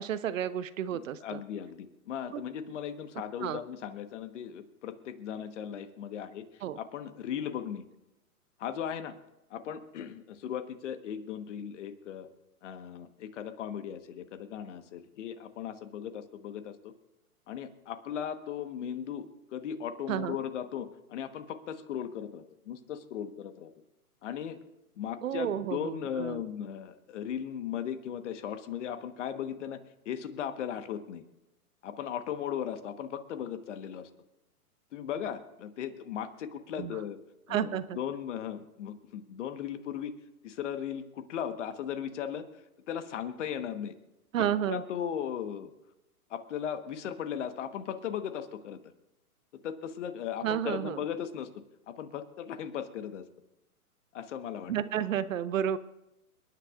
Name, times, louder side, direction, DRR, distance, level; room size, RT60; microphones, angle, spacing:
voice 1, 0.0-1.4 2.3-2.4 3.4-3.6 6.6-6.8 20.1-20.4 25.2-26.4 36.8-37.0 37.5-38.0 44.3-44.8 50.4-51.0 54.7-55.8, right 10 dB, 60° right, 15 dB, 0.7 m, -31 dB
voice 2, 0.9-7.8 8.6-9.1 9.5-12.3 12.6-16.9 17.5-19.2 19.5-23.7 24.2-24.6 25.0-29.8 30.0-31.2 31.8-34.1 34.9-37.2 37.5-40.1 40.4-42.4 42.9-43.9 44.7-45.7 46.3-48.8 49.6-51.5 51.9-53.2 54.1-54.7 55.0-55.2, left 9 dB, 50° left, 9 dB, 1.4 m, -37 dB
29.0 x 10.0 x 2.5 m, 0.94 s
hypercardioid pair, 135°, 46 cm